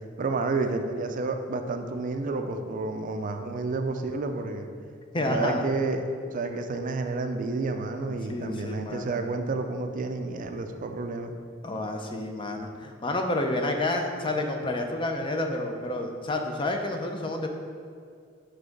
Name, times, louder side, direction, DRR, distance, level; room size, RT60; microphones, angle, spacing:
voice 1, 0.2-4.7 5.2-11.3, right 3 dB, 45° right, 6 dB, 0.4 m, -30 dB
voice 2, 5.1-5.7 8.3-9.1 11.6-17.5, left 2 dB, 25° left, 3 dB, 0.5 m, -29 dB
5.6 x 3.5 x 5.2 m, 2.3 s
head